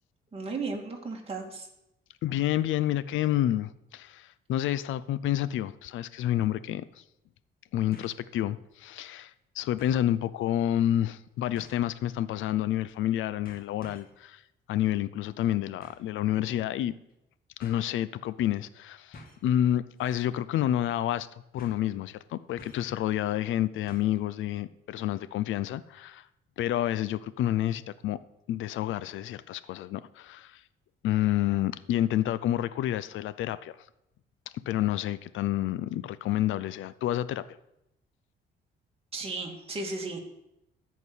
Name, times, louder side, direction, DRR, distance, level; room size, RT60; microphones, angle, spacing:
voice 1, 0.3-1.7 39.1-40.2, right 3 dB, 30° right, -1 dB, 2.4 m, -35 dB
voice 2, 2.2-6.8 7.7-9.3 9.6-14.4 14.7-16.9 17.6-21.3 21.5-26.2 26.6-28.2 28.5-30.6 31.0-33.7 34.7-37.4, left 12 dB, 80° left, 16 dB, 0.5 m, -29 dB
sound 1, 7.9-8.3 8.7-8.8 9.8-10.1 11.5-11.9 12.9-13.1 13.4-14.2 15.8-16.1 17.1-17.2 17.6-17.8 19.1-19.5 20.0-20.2 20.5-20.6 21.6-21.9 22.6-23.0 23.9-24.2 24.5-24.6, left 2 dB, 45° left, 2.0 m, -51 dB
13.5 x 4.7 x 8.2 m, 0.87 s
cardioid pair, 90°, 20 cm